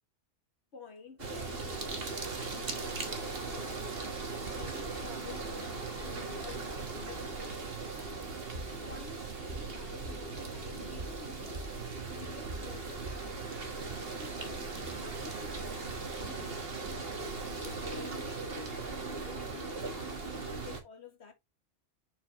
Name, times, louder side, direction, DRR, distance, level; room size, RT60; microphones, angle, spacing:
voice 1, 0.7-3.1 3.4-3.9 4.4-7.4 7.9-8.3 8.8-11.7 12.1-13.4 14.1-17.0 17.3-21.3, left 5 dB, 65° left, 1.9 m, -51 dB
sound 1, 1.2-20.8, right 3 dB, 55° right, 1.6 m, -39 dB
sound 2, 8.5-13.4, right 1 dB, 75° right, 3.0 m, -46 dB
6.9 x 4.7 x 3.0 m
omnidirectional pair, 1.2 m